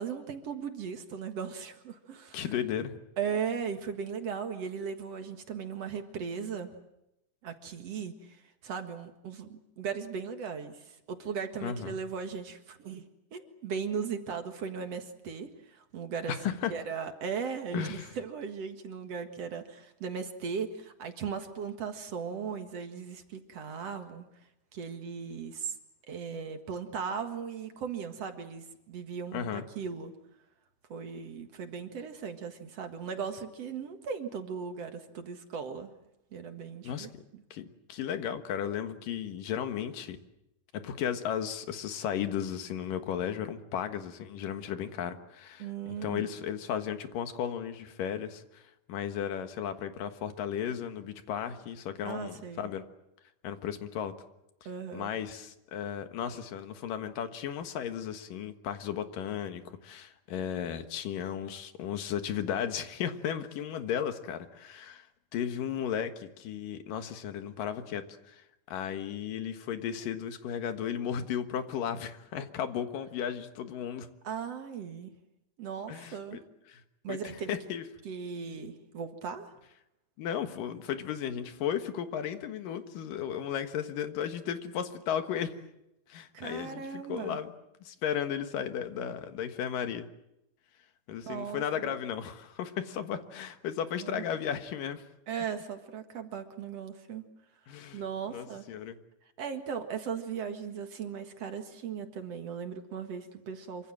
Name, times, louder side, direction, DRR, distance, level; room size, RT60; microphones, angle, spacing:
voice 1, 0.0-2.5 3.2-6.7 7.4-8.4 8.6-24.2 24.7-25.7 26.1-30.1 30.9-35.9 36.3-37.4 45.6-46.3 52.0-52.7 54.7-55.1 74.2-75.1 75.6-76.4 77.0-77.5 78.0-79.5 86.3-87.4 91.2-91.9 94.0-94.3 95.3-97.2 97.9-98.6 99.4-103.9, right 6 dB, 55° right, 6 dB, 2.6 m, -37 dB
voice 2, 2.3-2.9 11.6-12.0 16.3-16.7 17.7-18.1 29.3-29.7 36.8-37.2 37.5-40.2 40.7-45.7 46.0-48.6 48.9-52.8 53.4-54.1 54.9-65.1 65.3-68.4 68.7-74.1 75.9-76.4 76.7-76.8 77.1-77.8 80.2-85.5 86.1-87.5 87.8-90.1 91.1-95.0 97.7-98.0 98.3-99.0, left 9 dB, 90° left, 8 dB, 3.2 m, -35 dB
26.5 x 25.0 x 7.6 m, 0.86 s
omnidirectional pair, 3.7 m